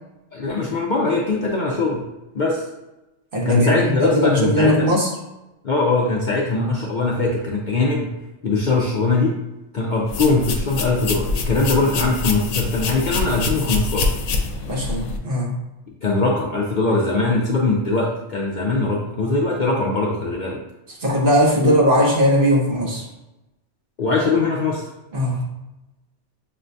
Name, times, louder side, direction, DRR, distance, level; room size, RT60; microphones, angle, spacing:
voice 1, 0.3-2.0 2.3-2.6 3.4-4.9 5.6-8.1 8.4-9.3 9.7-14.1 16.0-20.6 21.6-21.8 24.0-24.9, left 3 dB, 60° left, -3 dB, 0.5 m, -21 dB
voice 2, 3.3-5.1 14.7-15.5 21.0-23.0 25.1-25.5, equal, 50° right, -3 dB, 1.0 m, -19 dB
sound 1, 10.1-15.2, left 3 dB, 85° left, 0.9 m, -25 dB
6.5 x 2.2 x 2.6 m, 0.99 s
omnidirectional pair, 1.2 m